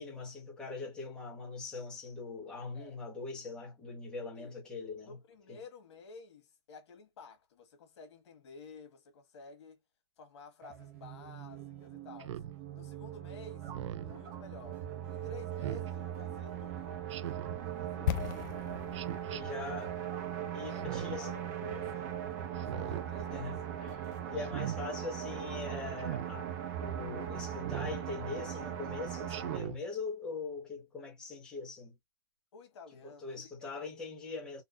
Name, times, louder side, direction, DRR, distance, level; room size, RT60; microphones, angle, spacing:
voice 1, 0.0-5.2 5.5-5.6 17.9-18.5 19.3-19.9 20.5-21.3 22.6-23.0 23.3-26.5 26.8-31.9 33.0-34.6, left 4 dB, 5° left, 1.4 m, -42 dB
voice 2, 5.0-9.8 10.2-12.4 12.7-14.8 15.1-16.9 17.8-18.9 19.6-19.8 20.7-22.2 22.7-23.5 32.5-34.1, left 4 dB, 70° left, 1.5 m, -52 dB
sound 1, 10.6-29.6, right 10 dB, 35° right, 0.7 m, -40 dB
Speech synthesizer, 12.2-12.5 13.6-14.1 15.6-15.9 17.1-17.6 18.9-19.4 20.7-21.2 22.5-23.1 24.4-24.8 26.0-26.3 27.6-28.0 29.3-29.8, right 11 dB, 85° right, 0.5 m, -40 dB
sound 2, 18.1-22.0 22.3-22.4, left 11 dB, 40° left, 0.4 m, -39 dB
4.1 x 2.2 x 2.6 m
supercardioid pair, 175°, 15 cm